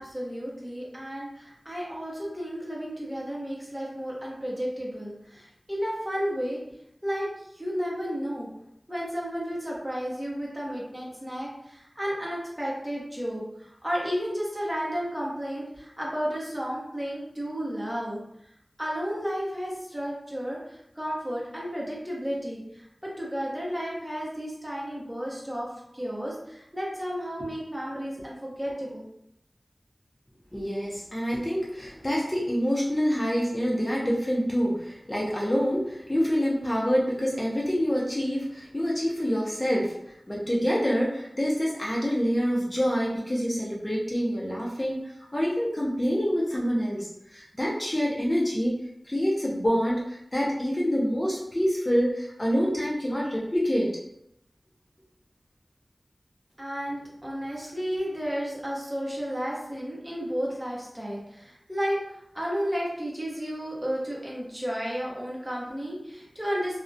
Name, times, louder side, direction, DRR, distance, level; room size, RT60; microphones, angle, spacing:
voice 1, 0.0-6.6 7.0-7.3 7.5-8.5 8.9-18.2 18.8-29.0 56.6-66.8, equal, 10° right, -5 dB, 0.7 m, -32 dB
voice 2, 30.5-48.8 49.0-53.9, equal, 25° left, -4 dB, 0.5 m, -26 dB
2.3 x 2.1 x 2.5 m, 0.79 s
wide cardioid pair, 65°, 0 cm